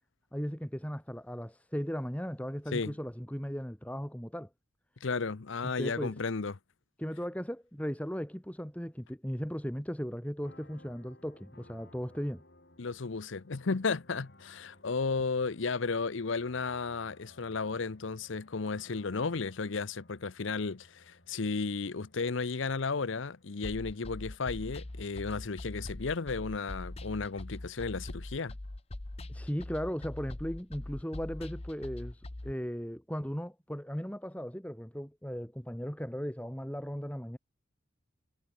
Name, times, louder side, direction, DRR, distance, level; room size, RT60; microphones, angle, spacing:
voice 1, 0.3-4.5 5.6-6.2 7.0-12.4 29.3-37.4, equal, 5° left, 2.8 m, -37 dB
voice 2, 5.0-6.5 12.8-28.5, left 4 dB, 70° left, 0.7 m, -34 dB
sound 1, 10.4-26.9, left 1 dB, 55° left, 4.2 m, -61 dB
sound 2, 23.6-32.5, left 1 dB, 30° left, 0.8 m, -42 dB
head